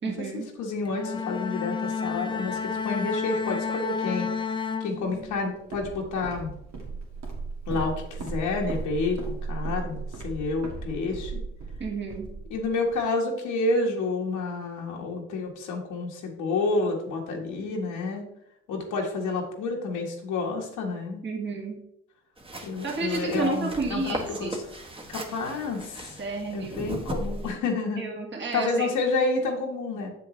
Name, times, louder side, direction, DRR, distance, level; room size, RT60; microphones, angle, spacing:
voice 1, 0.0-0.5 11.8-12.3 21.2-21.8 22.8-24.5 26.2-26.8 28.0-28.9, right 4 dB, 40° right, -2 dB, 2.0 m, -31 dB
voice 2, 0.6-4.3 4.8-6.5 7.7-11.4 12.5-18.2 18.7-21.2 22.6-24.6 25.1-26.2 26.5-28.0 28.5-30.1, left 3 dB, 85° left, 0 dB, 1.7 m, -29 dB
Bowed string instrument, 0.9-5.5, left 5 dB, 15° left, 0.7 m, -31 dB
Walk footsteps, 5.1-13.0, right 4 dB, 60° right, 2.1 m, -36 dB
sound 1, 22.4-27.5, right 1 dB, 20° right, 1.4 m, -37 dB
7.1 x 6.8 x 3.2 m, 0.75 s
cardioid pair, 90°, 30 cm